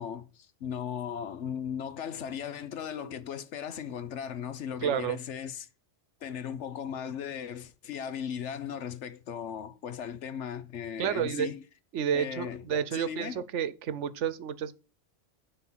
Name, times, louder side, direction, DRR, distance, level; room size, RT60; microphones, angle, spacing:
voice 1, 0.0-5.7 6.2-11.6 12.1-12.6 12.9-13.4, left 8 dB, 70° left, 1.1 m, -37 dB
voice 2, 4.8-5.2 11.0-11.5 11.9-14.7, right 8 dB, 75° right, 1.0 m, -30 dB
9.6 x 3.9 x 7.2 m
omnidirectional pair, 1.2 m